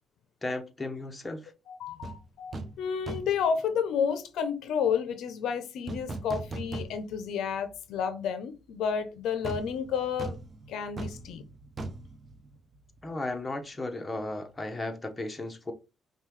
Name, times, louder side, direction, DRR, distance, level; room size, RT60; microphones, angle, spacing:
voice 1, 0.4-1.5 13.0-15.7, left 2 dB, 20° left, 0.9 m, -35 dB
voice 2, 1.7-10.4 10.7-11.4, left 7 dB, 80° left, 0.5 m, -31 dB
sound 1, 2.0-2.2 2.5-2.8 3.1-3.5 5.9-7.3 7.7-7.8 9.4-13.1 13.4-13.5, right 2 dB, 35° right, 0.7 m, -39 dB
5.4 x 2.3 x 3.1 m
cardioid pair, 90°, 0 cm